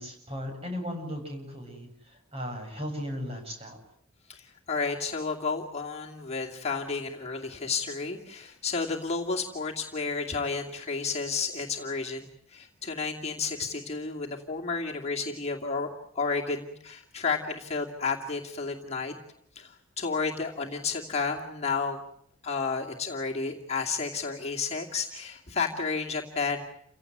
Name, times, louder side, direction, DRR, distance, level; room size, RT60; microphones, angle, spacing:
voice 1, 0.0-3.8, equal, 30° right, 3 dB, 7.5 m, -37 dB
voice 2, 4.3-15.9 16.1-19.1 19.6-22.0 22.4-26.6, left 4 dB, 30° left, -1 dB, 2.5 m, -31 dB
29.5 x 17.0 x 9.4 m, 0.72 s
head